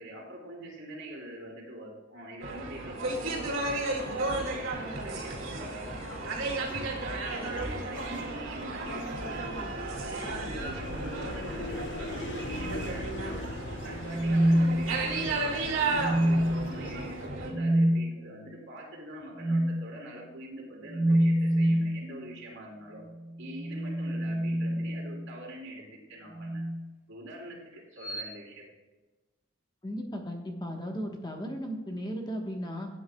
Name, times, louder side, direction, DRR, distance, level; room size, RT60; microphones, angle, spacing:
voice 1, 0.0-6.1 6.6-9.5 9.8-13.5 13.8-23.0 23.4-26.7 27.1-28.6, right 1 dB, 65° right, -3 dB, 3.6 m, -44 dB
sound 1, 2.4-17.5, right 2 dB, 85° right, 2.6 m, -34 dB
sound 2, 4.1-17.3, left 2 dB, 65° left, 0.9 m, -43 dB
sound 3, 14.0-15.3 15.9-16.7 17.5-18.0 19.4-19.8 20.9-21.9 23.4-25.3 26.3-26.8 28.0-28.3, equal, 10° right, 1.0 m, -26 dB
voice 2, 29.8-32.9, equal, 20° left, 2 dB, 1.2 m, -36 dB
15.5 x 8.8 x 2.3 m, 1.2 s
head